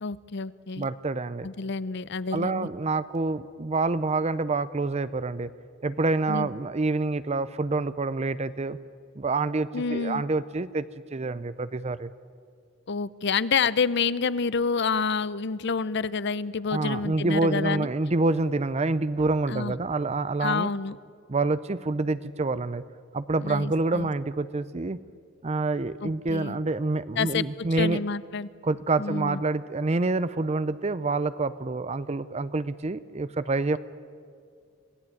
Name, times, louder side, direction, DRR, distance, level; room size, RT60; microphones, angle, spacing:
voice 1, 0.0-0.9 1.4-2.7 6.3-6.5 9.7-10.2 12.9-17.9 19.5-19.7 20.4-21.0 23.4-24.1 26.0-26.6 27.2-27.4 27.7-28.5 29.0-29.4, left 5 dB, 60° left, 18 dB, 0.7 m, -28 dB
voice 2, 0.8-1.5 2.3-5.5 5.8-8.8 9.2-10.8 11.1-12.1 16.7-20.7 21.3-22.8 23.1-25.0 25.4-28.0 28.6-33.8, right 3 dB, 35° right, 15 dB, 0.5 m, -27 dB
26.0 x 17.0 x 9.1 m, 2.2 s
head